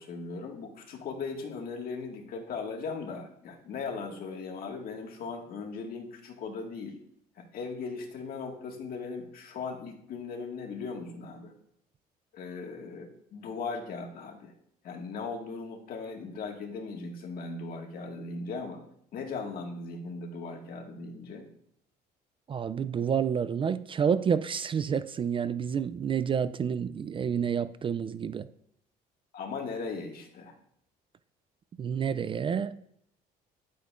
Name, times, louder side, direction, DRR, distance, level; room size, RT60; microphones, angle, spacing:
voice 1, 0.0-7.0 7.4-11.5 12.3-14.5 14.8-18.8 19.1-21.5 29.3-30.5, left 4 dB, 60° left, 1.8 m, -38 dB
voice 2, 22.5-28.5 31.8-32.8, right 7 dB, 30° right, 0.3 m, -29 dB
11.0 x 8.3 x 2.5 m
cardioid pair, 110°, 17 cm